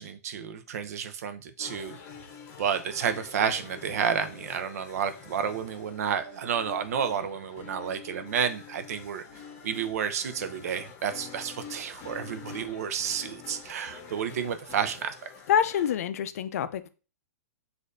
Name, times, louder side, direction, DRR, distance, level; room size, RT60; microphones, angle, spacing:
voice 1, 0.0-2.0 2.6-9.2 9.6-15.1, right 7 dB, 70° right, 0.6 m, -31 dB
sound 1, 1.6-16.0, left 6 dB, 45° left, 0.9 m, -46 dB
voice 2, 15.5-16.9, left 9 dB, 65° left, 0.4 m, -26 dB
6.3 x 2.5 x 2.6 m
hypercardioid pair, 135°, 9 cm